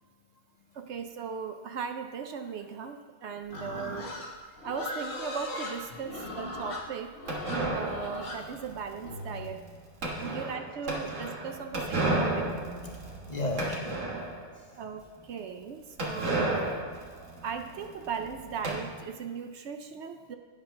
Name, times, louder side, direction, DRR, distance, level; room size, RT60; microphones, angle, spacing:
voice 1, 0.7-4.1 4.6-7.2 7.7-9.6 10.2-12.5 14.8-16.6 17.4-20.4, right 6 dB, 70° right, 7 dB, 0.9 m, -38 dB
Livestock farm animals working animals, 3.5-9.5, left 1 dB, 90° left, 1.8 m, -38 dB
sound 1, 7.3-14.5 14.9-15.0 15.2-15.3 16.0-18.8, right 2 dB, 90° right, 1.9 m, -33 dB
voice 2, 12.8-14.8 16.1-16.2 17.2-17.4, left 2 dB, 35° left, 1 dB, 1.1 m, -38 dB
9.9 x 5.9 x 5.7 m, 1.5 s
omnidirectional pair, 1.3 m